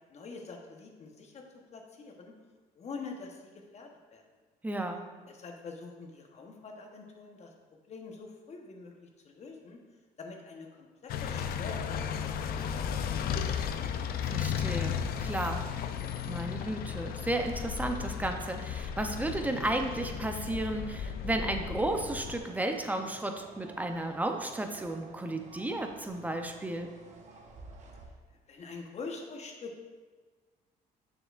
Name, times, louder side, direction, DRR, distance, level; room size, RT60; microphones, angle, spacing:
voice 1, 0.1-2.4 2.7-4.2 5.3-9.8 10.2-12.0 12.4-13.2 28.3-29.8, left 4 dB, 40° left, 2 dB, 1.0 m, -45 dB
voice 2, 4.6-5.0 14.2-15.7 16.3-26.9, right 1 dB, 10° right, 5 dB, 0.6 m, -33 dB
sound 1, 11.1-22.4, left 8 dB, 65° left, 0.5 m, -35 dB
sound 2, 22.0-28.1, right 3 dB, 45° right, 1.1 m, -52 dB
6.9 x 6.7 x 2.5 m, 1.4 s
cardioid pair, 110°, 17 cm